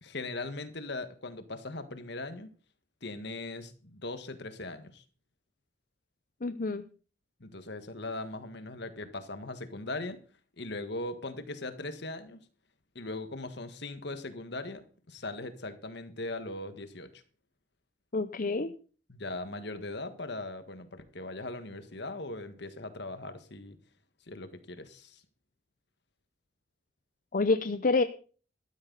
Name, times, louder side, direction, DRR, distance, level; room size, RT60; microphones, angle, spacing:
voice 1, 0.0-2.5 3.0-5.0 7.4-10.2 10.6-12.5 12.9-17.2 19.1-23.8 24.3-25.2, left 2 dB, 60° left, 10 dB, 1.6 m, -39 dB
voice 2, 6.4-6.8 18.1-18.7 27.3-28.0, left 3 dB, 45° left, 11 dB, 0.7 m, -27 dB
13.0 x 13.0 x 4.1 m, 0.40 s
head